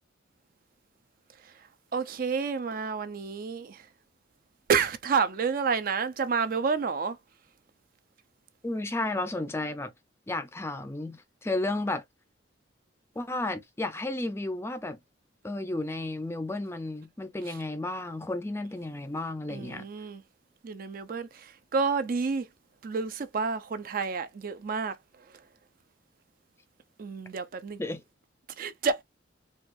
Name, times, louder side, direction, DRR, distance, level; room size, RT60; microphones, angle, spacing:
voice 1, 1.9-3.9 4.7-7.2 17.5-17.6 19.5-20.2 20.6-22.5 22.8-25.0 27.0-27.8 28.6-29.0, right 5 dB, 45° right, 0.4 m, -29 dB
voice 2, 8.6-9.9 10.3-12.0 13.2-15.0 15.4-19.8 27.8-28.0, left 2 dB, 15° left, 0.4 m, -33 dB
4.3 x 2.3 x 2.5 m
head